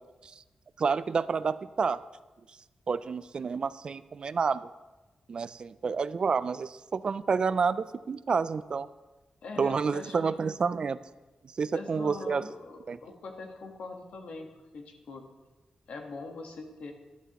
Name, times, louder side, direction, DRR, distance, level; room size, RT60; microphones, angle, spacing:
voice 1, 0.8-2.0 2.9-4.7 5.3-8.9 9.6-11.0 11.6-12.5 12.9-13.0, right 5 dB, 45° right, 16 dB, 0.3 m, -29 dB
voice 2, 9.4-10.3 11.7-15.3 15.9-16.9, left 3 dB, 90° left, 3 dB, 1.4 m, -42 dB
12.5 x 11.5 x 3.0 m, 1.2 s
wide cardioid pair, 140°, 2 cm